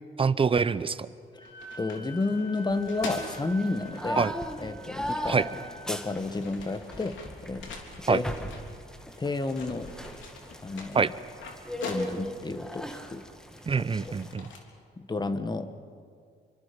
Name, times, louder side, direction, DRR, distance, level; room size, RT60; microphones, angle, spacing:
voice 1, 0.2-1.1 4.2-4.3 5.3-5.5 8.1-8.2 10.9-11.1 13.7-14.5, right 5 dB, 25° right, 16 dB, 0.8 m, -25 dB
sound 1, 0.9-1.1 1.4-4.0 5.2-5.3 5.9-9.2 9.5-12.5 13.1-14.6, left 4 dB, 75° left, 3.5 m, -43 dB
Wind instrument woodwind instrument, 1.3-6.0, right 1 dB, 90° left, 6.7 m, -46 dB
voice 2, 1.8-4.3 4.6-5.4 5.9-7.2 7.4-7.7 8.1-8.3 9.2-9.9 10.6-11.0 11.9-13.2 13.7-13.8 15.0-15.7, left 3 dB, 20° left, 10 dB, 1.5 m, -31 dB
sound 2, 2.7-14.3, equal, 5° left, 1.7 m, -39 dB
27.0 x 24.0 x 5.3 m, 2.2 s
cardioid pair, 90°, 20 cm